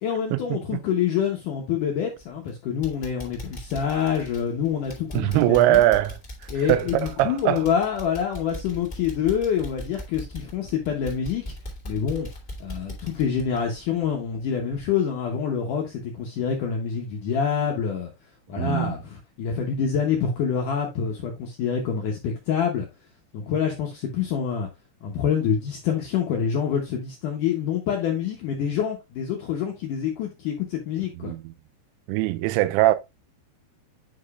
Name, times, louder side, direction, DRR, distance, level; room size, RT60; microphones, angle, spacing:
voice 1, 0.0-5.8 6.5-11.4 11.9-12.3 12.6-18.1 18.5-22.9 23.3-24.7 25.0-31.3, left 7 dB, 80° left, 1.8 m, -26 dB
sound 1, 2.2-2.5 2.8-14.4 14.7-14.9 15.3-15.4, left 1 dB, 35° left, 0.7 m, -39 dB
voice 2, 5.1-6.2 6.7-7.6 18.6-19.0 31.2-31.5 32.1-33.0, right 15 dB, 90° right, 2.3 m, -21 dB
9.2 x 4.9 x 2.4 m
omnidirectional pair, 5.1 m